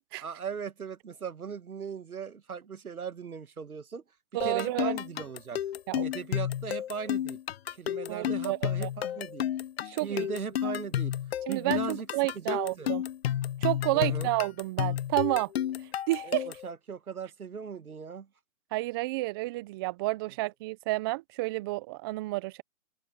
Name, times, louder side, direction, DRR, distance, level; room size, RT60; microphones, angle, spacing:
voice 1, 0.2-4.0 4.4-5.6 6.0-7.4 7.7-9.5 9.8-11.1 11.5-12.1 12.3-12.9 13.9-14.3 16.2-18.3, right 6 dB, 85° right, 1.6 m, -38 dB
voice 2, 4.3-4.9 5.9-6.1 8.1-8.9 9.9-10.3 11.5-13.0 13.6-15.5 16.1-16.5 18.7-22.6, right 21 dB, 15° right, 0.7 m, -30 dB
sound 1, 4.4-16.7, left 11 dB, 45° left, 0.9 m, -32 dB
open air
hypercardioid pair, 140°, 43 cm